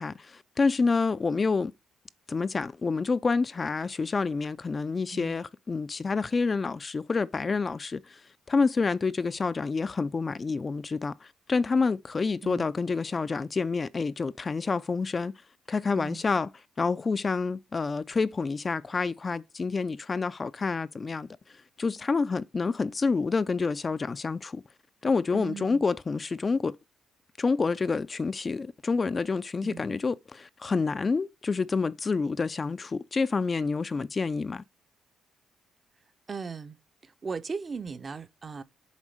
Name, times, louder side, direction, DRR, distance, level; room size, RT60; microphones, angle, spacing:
voice 1, 0.0-1.7 2.3-15.3 15.7-16.5 16.8-24.6 25.0-26.8 27.4-34.6, left 4 dB, 30° left, 0.5 m, -28 dB
voice 2, 25.3-25.8 29.6-29.8 36.3-38.6, right 5 dB, 35° right, 0.8 m, -38 dB
7.3 x 4.1 x 6.5 m
cardioid pair, 90°, 0 cm